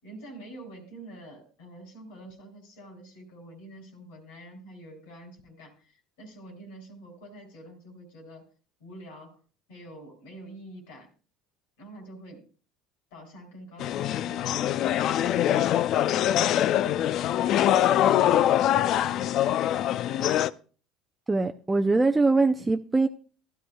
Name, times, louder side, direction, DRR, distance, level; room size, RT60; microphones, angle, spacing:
voice 1, 0.0-5.9 6.2-8.4 8.8-9.4 9.7-11.1 11.8-12.5 13.1-15.0 15.5-19.9 22.6-22.7, right 1 dB, 80° left, 3.6 m, -47 dB
sound 1, 13.8-20.5, left 12 dB, 55° left, 0.4 m, -23 dB
voice 2, 21.3-23.1, right 3 dB, 15° right, 0.5 m, -22 dB
15.5 x 11.5 x 2.3 m
hypercardioid pair, 85°, 0 cm